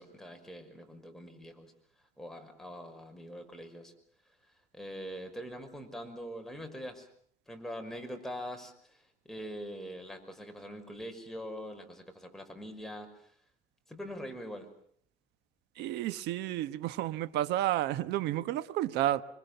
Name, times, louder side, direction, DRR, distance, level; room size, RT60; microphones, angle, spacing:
voice 1, 0.0-1.7 2.2-3.9 4.7-7.1 7.5-13.1 13.9-14.7, equal, ahead, 5.9 m, -43 dB
voice 2, 15.8-19.2, right 13 dB, 85° right, 1.3 m, -31 dB
26.5 x 24.5 x 6.9 m
cardioid pair, 110°, 17 cm